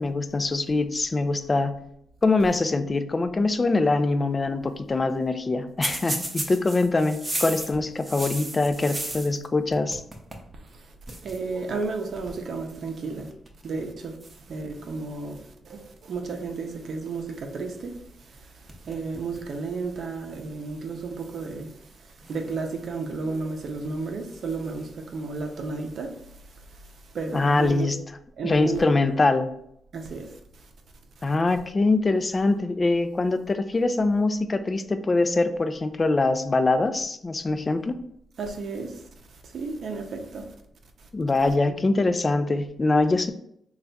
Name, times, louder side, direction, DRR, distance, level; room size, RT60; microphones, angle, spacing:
voice 1, 0.0-1.7 2.2-10.0 27.3-28.0 28.4-29.5 31.2-38.0 41.1-43.3, left 3 dB, 30° left, 0.3 m, -23 dB
sound 1, 5.8-9.5 9.7-10.5 10.7-10.8 11.1-11.4 12.3-12.5 13.3-13.7 14.2-15.3 18.2-18.4 18.7-19.5 19.9-20.0 21.0-21.1 22.2-23.1 24.3-24.9, right 1 dB, 20° right, 0.6 m, -35 dB
voice 2, 11.2-13.3 13.6-14.2 14.5-18.0 18.8-21.7 22.3-26.1 27.1-27.9 28.4-28.8 29.9-30.3 38.4-39.0 39.4-40.4 41.7-42.1, right 4 dB, 65° right, 0.6 m, -33 dB
3.3 x 2.4 x 4.0 m
cardioid pair, 85°, 0 cm